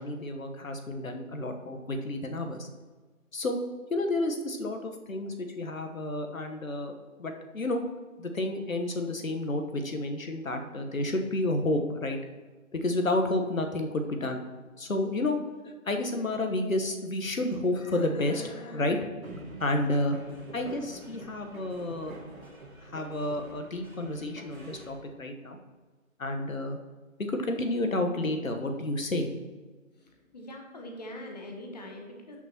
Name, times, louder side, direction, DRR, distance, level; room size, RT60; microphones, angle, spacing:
voice 1, 0.0-2.7 3.3-3.6 3.9-6.9 7.2-7.8 8.2-12.2 12.7-14.4 14.8-15.4 15.6-19.0 19.6-20.2 20.5-22.2 22.8-25.6 26.2-26.8 27.3-29.3, left 1 dB, 75° left, 5 dB, 1.2 m, -30 dB
sound 1, 19.2-24.9, right 1 dB, 90° right, 2.5 m, -46 dB
voice 2, 29.9-32.4, left 1 dB, 30° left, 1 dB, 1.1 m, -43 dB
13.0 x 6.1 x 2.9 m, 1.3 s
figure-of-eight pair, 150°, 41 cm